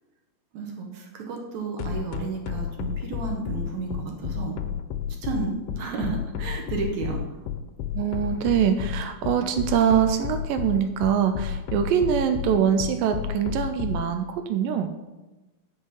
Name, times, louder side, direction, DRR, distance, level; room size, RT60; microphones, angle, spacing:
voice 1, 0.5-4.6 5.2-7.2, right 4 dB, 65° right, 1 dB, 2.1 m, -32 dB
sound 1, 1.8-14.0, left 10 dB, 80° left, 2.2 m, -31 dB
voice 2, 7.9-14.9, right 8 dB, 80° right, 7 dB, 2.1 m, -23 dB
9.6 x 5.4 x 5.3 m, 1.1 s
omnidirectional pair, 4.3 m